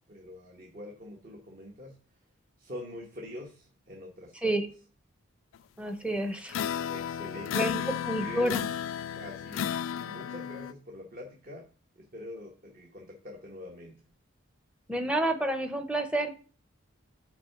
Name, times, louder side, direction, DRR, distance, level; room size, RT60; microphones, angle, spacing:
voice 1, 0.1-2.0 2.6-4.5 6.8-7.9 8.2-8.6 9.1-11.7 11.9-14.0, left 1 dB, 40° right, 0 dB, 1.1 m, -45 dB
voice 2, 5.8-6.6 7.5-8.6 14.9-16.3, right 1 dB, 5° right, 7 dB, 0.7 m, -29 dB
sound 1, 6.5-10.7, left 9 dB, 70° left, 0.3 m, -33 dB
6.0 x 4.5 x 5.8 m, 0.39 s
head